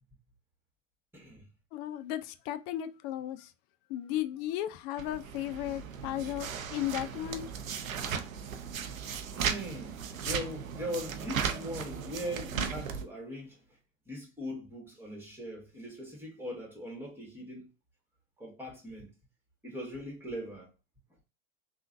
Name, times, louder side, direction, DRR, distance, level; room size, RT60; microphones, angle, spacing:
voice 1, 1.1-1.5 9.3-13.6 14.0-17.7 18.4-19.1 19.6-20.7, equal, 5° right, 1.7 m, -40 dB
voice 2, 1.7-3.5 3.9-7.5, left 13 dB, 45° left, 0.5 m, -35 dB
sound 1, 5.0-13.0, right 7 dB, 90° right, 0.6 m, -36 dB
3.6 x 2.5 x 2.6 m
hypercardioid pair, 90°, 39 cm